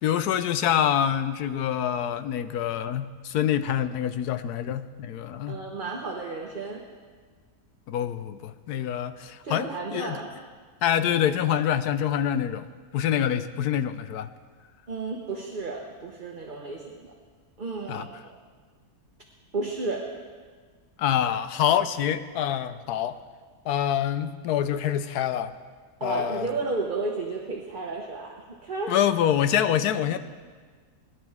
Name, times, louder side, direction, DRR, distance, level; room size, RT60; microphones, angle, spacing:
voice 1, 0.0-5.6 7.9-10.2 10.8-12.7 12.9-14.3 17.9-18.1 21.0-23.2 23.6-25.5 26.0-26.5 28.9-30.2, left 10 dB, 85° left, 12 dB, 1.2 m, -26 dB
voice 2, 5.5-6.8 9.4-10.3 14.9-17.1 17.6-18.4 19.5-20.1 26.0-29.0, right 3 dB, 35° right, 0 dB, 1.2 m, -32 dB
24.0 x 11.0 x 3.6 m, 1.5 s
omnidirectional pair, 1.6 m